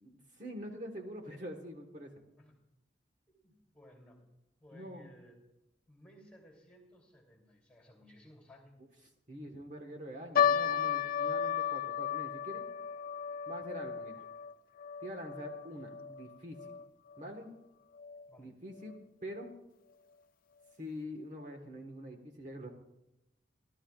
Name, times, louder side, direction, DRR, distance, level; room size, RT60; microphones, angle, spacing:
voice 1, 0.0-2.1 4.7-5.1 9.3-12.7 13.5-14.3 15.0-16.7 17.2-17.5 18.4-19.5 20.8-22.7, equal, 40° right, 3 dB, 1.4 m, -45 dB
voice 2, 3.4-4.2 4.6-5.4 5.9-8.7 18.3-18.5, equal, 5° left, 1 dB, 3.0 m, -58 dB
sound 1, 10.4-16.8 17.1-17.2 18.0-18.2 18.9-19.0 19.3-19.5, left 8 dB, 50° left, 0.4 m, -34 dB
26.0 x 12.5 x 2.4 m, 0.92 s
head